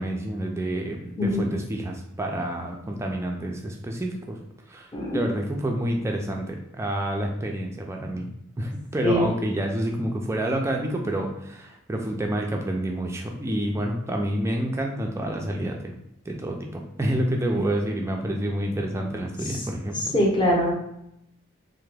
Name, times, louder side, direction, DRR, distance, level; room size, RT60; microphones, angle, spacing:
voice 1, 0.0-4.4 4.7-8.3 8.6-15.9 16.3-20.1, right 1 dB, 10° right, 1 dB, 0.3 m, -28 dB
voice 2, 4.9-5.2 9.0-9.3 19.4-19.6 20.1-20.7, left 1 dB, 20° left, -3 dB, 0.6 m, -22 dB
3.3 x 2.1 x 3.2 m, 0.80 s
head